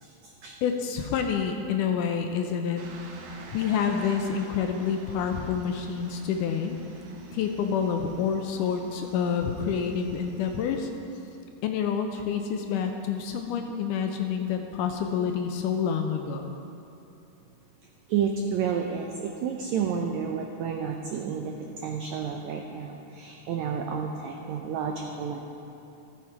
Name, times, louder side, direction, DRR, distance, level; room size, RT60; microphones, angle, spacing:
voice 1, 0.0-0.6 18.1-25.4, right 7 dB, 90° right, 2 dB, 1.6 m, -31 dB
voice 2, 0.6-2.8 3.5-6.8 7.3-10.9 11.6-16.6, left 7 dB, 80° left, 4 dB, 2.0 m, -28 dB
sound 1, 2.8-10.9, right 3 dB, 70° right, 1.5 m, -46 dB
15.0 x 7.3 x 4.7 m, 3.0 s
omnidirectional pair, 4.1 m